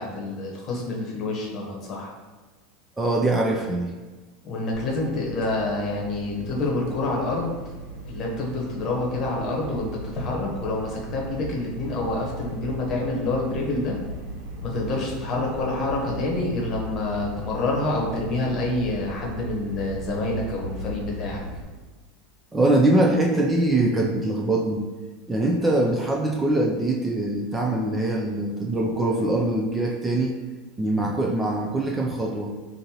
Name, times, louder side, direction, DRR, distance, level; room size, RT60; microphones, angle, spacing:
voice 1, 0.0-2.1 4.4-7.5 8.0-14.0 14.6-21.4, left 2 dB, 35° left, -2 dB, 1.0 m, -27 dB
voice 2, 3.0-3.9 22.5-24.8 25.3-30.3 30.8-32.5, right 2 dB, 15° right, 0 dB, 0.3 m, -23 dB
sound 1, 4.7-21.6, right 1 dB, 70° right, 0.8 m, -37 dB
5.2 x 2.6 x 2.9 m, 1.3 s
supercardioid pair, 140°, 0 cm